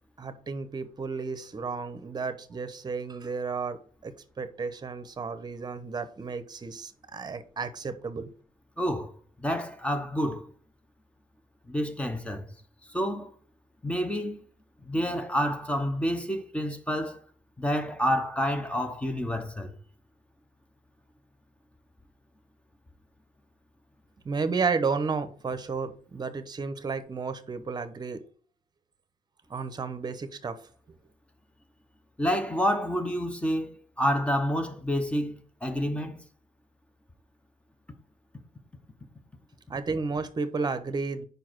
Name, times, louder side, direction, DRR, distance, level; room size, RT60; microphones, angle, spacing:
voice 1, 0.2-8.3 24.2-28.2 29.5-30.6 39.7-41.3, right 4 dB, 30° right, 0.9 m, -32 dB
voice 2, 8.8-9.1 9.4-10.5 11.7-12.5 12.9-13.3 13.8-14.4 14.8-17.2 17.6-19.7 32.2-36.2, equal, 10° left, 0.9 m, -28 dB
5.2 x 4.7 x 6.1 m
cardioid pair, 125°, 14 cm